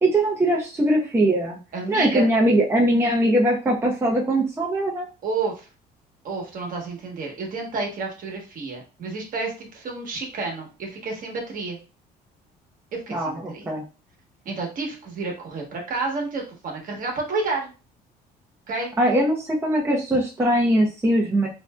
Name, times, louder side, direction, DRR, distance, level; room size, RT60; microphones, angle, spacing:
voice 1, 0.0-1.6 1.9-5.1 13.1-13.8 19.0-21.5, right 1 dB, 15° right, -2 dB, 0.6 m, -21 dB
voice 2, 1.7-2.3 5.2-5.7 6.2-11.8 12.9-13.7 14.4-17.7 18.7-18.9, right 3 dB, 55° right, 1 dB, 1.1 m, -30 dB
3.2 x 2.6 x 2.2 m, 0.33 s
cardioid pair, 110°, 17 cm